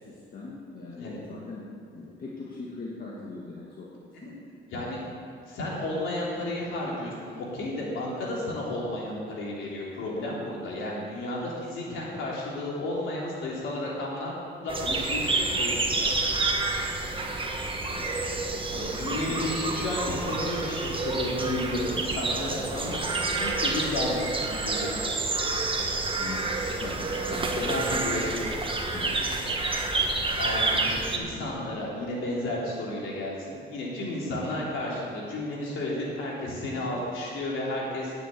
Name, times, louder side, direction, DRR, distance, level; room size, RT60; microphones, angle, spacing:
voice 1, 0.0-4.4 17.9-18.2 18.6-19.4 26.1-27.7 28.9-29.3, left 3 dB, 45° left, -4 dB, 1.9 m, -41 dB
voice 2, 5.5-14.4 14.6-16.1 18.7-23.0 23.4-24.9 27.5-28.3 30.4-38.1, left 1 dB, 80° left, -4 dB, 3.5 m, -32 dB
sound 1, 14.7-31.2, right 3 dB, 25° right, 1.4 m, -28 dB
10.0 x 7.5 x 8.5 m, 2.3 s
cardioid pair, 90°, 20 cm